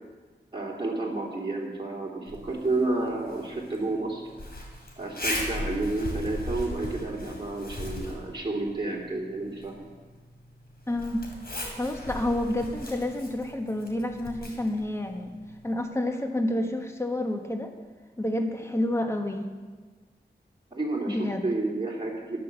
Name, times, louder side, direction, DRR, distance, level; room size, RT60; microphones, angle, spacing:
voice 1, 0.5-4.2 5.0-9.7 20.7-22.4, right 2 dB, 25° right, -3 dB, 3.2 m, -30 dB
Zipper (clothing), 2.3-15.8, left 1 dB, 60° left, 3.5 m, -39 dB
voice 2, 10.9-11.2 11.8-15.3 15.6-17.7 18.2-19.5 21.1-21.5, left 1 dB, 15° left, 4 dB, 1.4 m, -29 dB
13.0 x 10.0 x 6.8 m, 1.4 s
wide cardioid pair, 70°, 18 cm